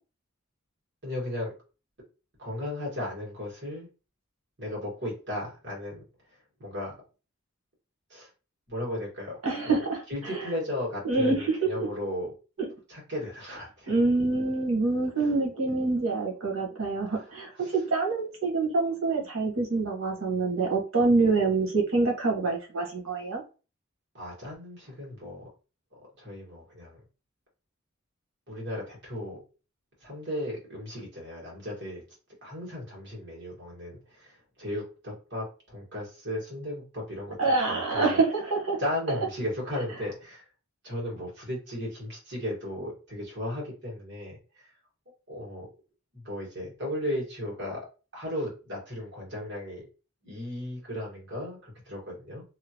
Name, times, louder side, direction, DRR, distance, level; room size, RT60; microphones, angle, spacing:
voice 1, 1.0-1.5 2.4-3.9 4.6-6.0 6.6-6.9 8.1-8.3 8.7-9.4 9.7-9.8 10.1-12.3 12.9-14.0 15.2-15.3 17.1-17.2 17.6-17.7 24.1-25.5 26.2-27.0 28.5-29.4 30.0-32.0 32.4-38.2 38.8-40.4 40.8-44.7 45.3-45.7 46.1-47.9 48.1-49.8 50.2-52.4, left 1 dB, 55° right, -3 dB, 1.6 m, -35 dB
voice 2, 9.4-10.5 11.0-11.6 13.9-23.4 37.4-38.8, right 3 dB, 85° right, 0 dB, 1.2 m, -26 dB
2.9 x 2.5 x 2.8 m, 0.33 s
head